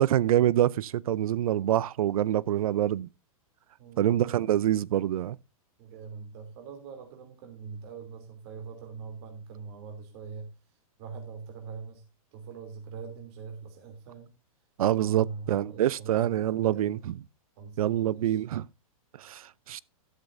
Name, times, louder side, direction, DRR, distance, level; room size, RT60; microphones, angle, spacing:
voice 1, 0.0-3.1 4.0-5.4 14.8-17.1 17.8-18.6 19.2-19.8, right 12 dB, 70° right, 0.6 m, -26 dB
voice 2, 5.8-10.5 11.0-12.0 12.3-14.3 15.0-17.0 17.6-18.4, right 5 dB, 45° right, 2.9 m, -42 dB
13.0 x 12.5 x 2.6 m
hypercardioid pair, 140°, 19 cm